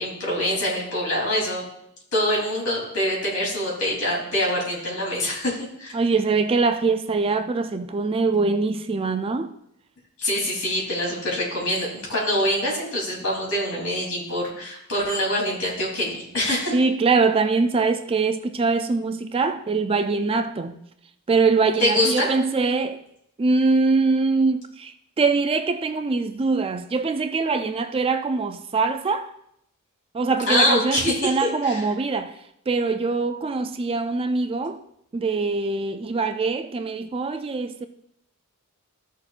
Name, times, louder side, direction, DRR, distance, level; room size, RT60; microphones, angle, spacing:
voice 1, 0.0-1.6 2.1-5.9 10.2-16.8 21.8-22.3 30.5-31.8, left 1 dB, 65° left, 3.2 m, -24 dB
voice 2, 5.9-9.5 16.7-20.8 21.3-23.0 23.4-29.3 30.1-32.3 32.7-34.8 35.1-37.9, right 4 dB, 25° right, 0.3 m, -23 dB
15.0 x 6.4 x 2.5 m
head